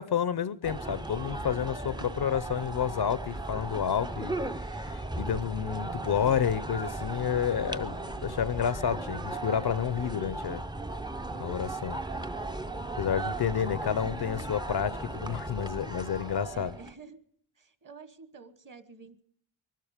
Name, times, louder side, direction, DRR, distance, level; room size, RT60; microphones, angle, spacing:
voice 1, 0.0-4.4 4.7-10.6 11.4-12.0 13.0-16.7, left 8 dB, 50° left, 0.6 m, -30 dB
sound 1, 0.6-16.9, right 2 dB, 10° right, 0.6 m, -36 dB
voice 2, 1.8-2.3 2.5-2.8 12.1-12.5 16.5-17.2 17.5-19.2, right 4 dB, 40° right, 1.4 m, -50 dB
sound 2, 2.1-8.8, right 4 dB, 75° right, 1.5 m, -57 dB
23.0 x 12.0 x 5.0 m
cardioid pair, 75°, 50 cm